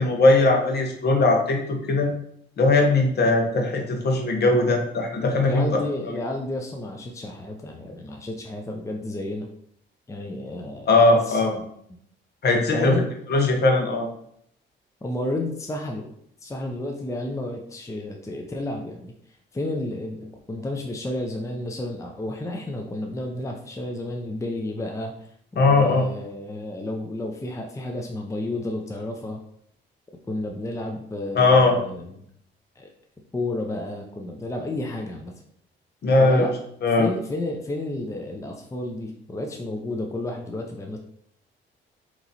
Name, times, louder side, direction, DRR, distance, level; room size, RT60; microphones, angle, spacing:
voice 1, 0.0-1.6 1.9-2.1 2.6-5.8 10.9-11.5 12.4-13.0 13.3-14.1 25.6-26.1 31.3-31.7 36.0-36.5 36.8-37.1, left 2 dB, 55° left, 2 dB, 1.2 m, -19 dB
voice 2, 5.4-9.5 10.1-11.6 12.7-13.1 15.0-16.1 16.4-19.1 19.5-29.4 30.3-32.3 32.8-32.9 33.3-35.3 36.2-36.5 37.0-41.0, left 1 dB, 15° left, 2 dB, 0.6 m, -31 dB
4.0 x 3.0 x 4.0 m, 0.68 s
cardioid pair, 90°, 20 cm